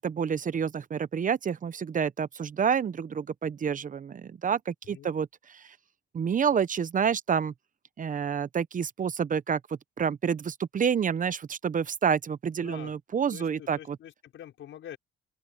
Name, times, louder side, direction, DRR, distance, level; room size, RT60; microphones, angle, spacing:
voice 1, 0.0-5.6 6.1-7.5 8.0-9.6 10.0-14.0, right 7 dB, 40° right, 0.8 m, -28 dB
voice 2, 12.6-12.9 13.3-15.0, left 11 dB, 75° left, 5.6 m, -45 dB
open air
cardioid pair, 90°, 20 cm